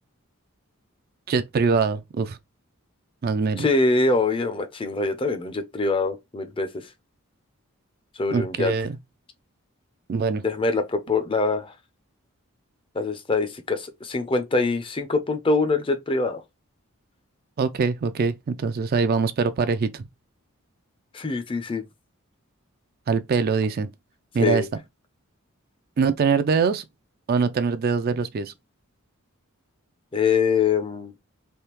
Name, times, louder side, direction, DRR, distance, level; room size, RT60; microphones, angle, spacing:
voice 1, 1.3-2.4 3.2-3.7 8.3-9.0 10.1-10.4 17.6-20.1 23.1-23.9 24.3-24.6 26.0-26.8 27.3-28.5, right 5 dB, 45° right, 0.3 m, -23 dB
voice 2, 3.6-6.9 8.2-8.7 10.4-11.7 12.9-16.4 21.1-21.8 24.4-24.7 30.1-31.1, left 3 dB, 25° left, 0.5 m, -24 dB
3.4 x 2.7 x 2.9 m
head